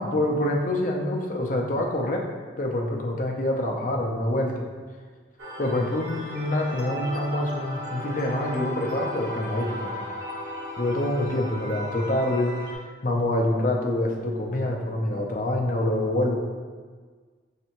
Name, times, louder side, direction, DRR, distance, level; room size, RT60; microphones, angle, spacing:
voice 1, 0.0-2.3 2.6-4.6 5.6-10.1 10.8-12.6 13.0-16.4, left 1 dB, 45° left, 0 dB, 0.6 m, -26 dB
sound 1, 5.4-12.7, left 1 dB, 80° right, 1.1 m, -35 dB
5.4 x 3.3 x 2.9 m, 1.5 s
head